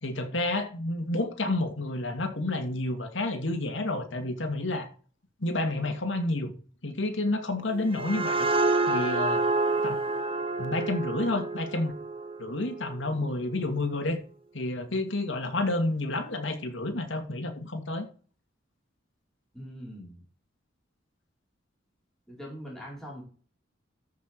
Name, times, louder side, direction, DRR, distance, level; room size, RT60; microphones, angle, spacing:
voice 1, 0.0-4.9 5.4-6.5 6.8-8.5 8.9-9.4 9.8-10.0 10.6-11.9 12.4-14.2 14.5-18.1, left 2 dB, 70° left, 2.3 m, -30 dB
sound 1, 7.7-13.2, right 3 dB, 30° right, 1.2 m, -28 dB
voice 2, 19.5-20.2 22.3-23.2, equal, ahead, 4.5 m, -42 dB
13.5 x 5.9 x 4.6 m
head